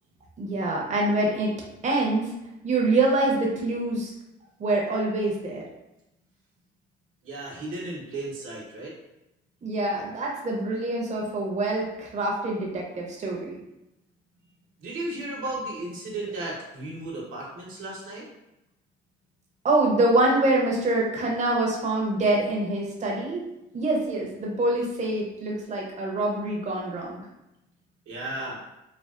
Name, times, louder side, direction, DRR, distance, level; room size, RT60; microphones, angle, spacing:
voice 1, 0.4-1.5 1.8-2.3 2.6-4.1 4.6-5.6 9.6-13.6 19.6-23.4 23.7-27.2, right 2 dB, 35° right, -2 dB, 0.6 m, -25 dB
voice 2, 7.2-8.9 14.8-18.2 28.1-28.6, right 2 dB, 85° right, -4 dB, 0.9 m, -34 dB
3.3 x 2.3 x 2.4 m, 0.90 s
cardioid pair, 90°, 20 cm